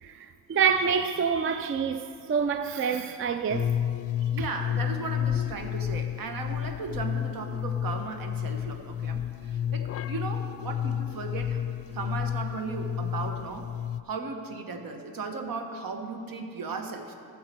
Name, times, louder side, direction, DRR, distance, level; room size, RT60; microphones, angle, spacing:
voice 1, 0.0-3.7, right 6 dB, 35° right, 0.4 m, -27 dB
sound 1, 3.5-14.0, left 9 dB, 40° left, 0.4 m, -31 dB
voice 2, 4.2-11.6 11.9-13.7 14.0-17.1, right 4 dB, 65° right, 1.2 m, -36 dB
13.0 x 7.3 x 4.5 m
cardioid pair, 80°, 38 cm